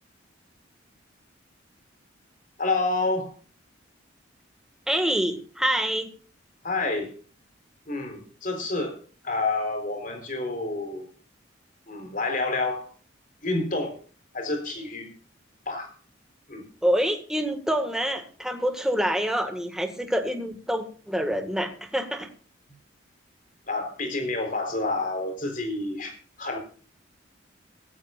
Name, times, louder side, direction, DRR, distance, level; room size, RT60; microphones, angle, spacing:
voice 1, 2.6-3.3 6.6-7.1 7.9-9.0 9.2-11.1 11.9-12.9 13.4-14.0 14.3-15.1 15.7-15.9 16.5-16.7 23.7-26.6, left 2 dB, 45° left, 5 dB, 4.1 m, -29 dB
voice 2, 4.9-6.1 16.8-22.3, equal, 5° right, 6 dB, 1.8 m, -26 dB
17.5 x 15.0 x 2.5 m, 0.40 s
head